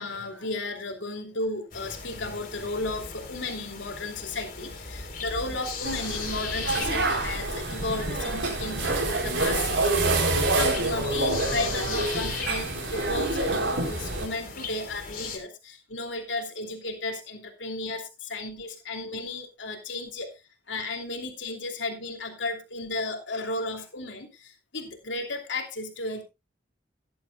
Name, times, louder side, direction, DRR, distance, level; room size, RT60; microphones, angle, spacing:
voice 1, 0.0-20.3 20.7-26.2, left 2 dB, 85° left, 4 dB, 2.9 m, -34 dB
sound 1, 1.7-15.4, left 4 dB, 45° left, 3.6 m, -38 dB
sound 2, 5.8-14.3, right 2 dB, 90° right, 4.9 m, -27 dB
17.5 x 11.5 x 2.3 m, 0.25 s
head